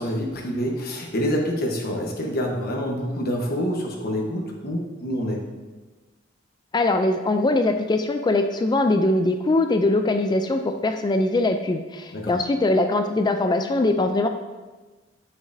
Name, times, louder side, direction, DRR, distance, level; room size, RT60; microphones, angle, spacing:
voice 1, 0.0-5.4 12.1-12.3, equal, 50° left, -1 dB, 1.1 m, -27 dB
voice 2, 6.7-14.3, left 2 dB, 20° left, 7 dB, 0.3 m, -22 dB
9.1 x 6.3 x 2.7 m, 1.3 s
head